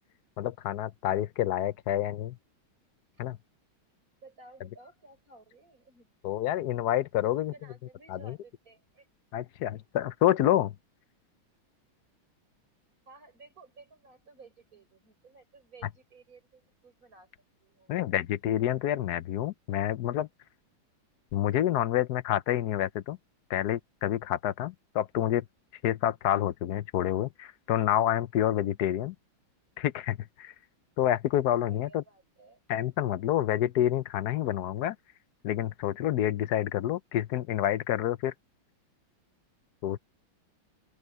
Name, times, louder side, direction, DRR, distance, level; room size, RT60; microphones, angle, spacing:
voice 1, 0.4-2.4 3.2-3.4 6.2-7.5 8.1-8.4 9.3-10.7 17.9-20.3 21.3-23.2 23.5-25.4 25.8-29.1 29.8-30.5 31.0-32.0 32.7-35.0 35.4-38.3 39.8-40.0, left 12 dB, 65° left, 1.0 m, -28 dB
voice 2, 4.2-6.1 7.2-9.1 13.1-17.3 17.6-18.2 31.5-32.6, right 3 dB, 40° right, 6.2 m, -55 dB
open air
omnidirectional pair, 2.2 m